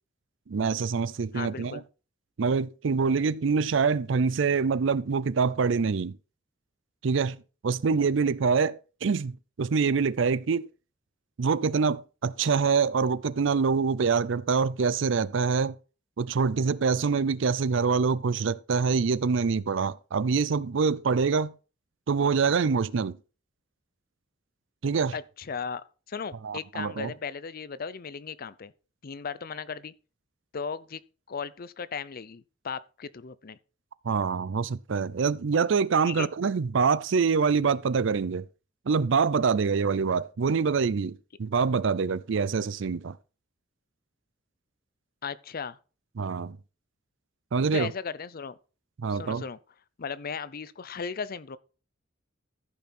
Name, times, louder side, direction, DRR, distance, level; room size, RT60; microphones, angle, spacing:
voice 1, 0.5-1.8 2.4-6.2 7.0-7.4 7.6-10.7 11.4-15.8 16.2-21.5 22.1-23.2 24.8-25.1 26.4-27.1 34.0-38.5 38.9-43.2 46.2-46.6 47.5-47.9 49.0-49.4, right 5 dB, 70° right, 0.5 m, -25 dB
voice 2, 1.3-1.8 25.1-28.7 29.0-29.9 30.5-31.0 31.3-33.6 36.0-36.3 45.2-45.8 47.7-48.6 49.1-49.6 50.0-51.6, left 6 dB, 50° left, 0.6 m, -36 dB
14.0 x 5.9 x 4.3 m
head